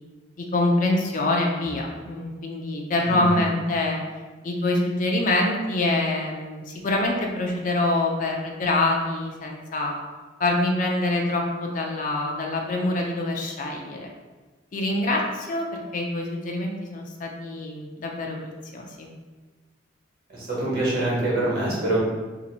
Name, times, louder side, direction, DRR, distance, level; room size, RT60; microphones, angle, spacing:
voice 1, 0.4-4.0 4.4-9.9 10.4-14.1 14.7-18.4 18.7-19.1, left 2 dB, 40° left, 0 dB, 0.4 m, -25 dB
voice 2, 3.1-3.5 20.3-22.0, right 1 dB, 50° right, -6 dB, 1.2 m, -25 dB
2.8 x 2.5 x 4.0 m, 1.3 s
head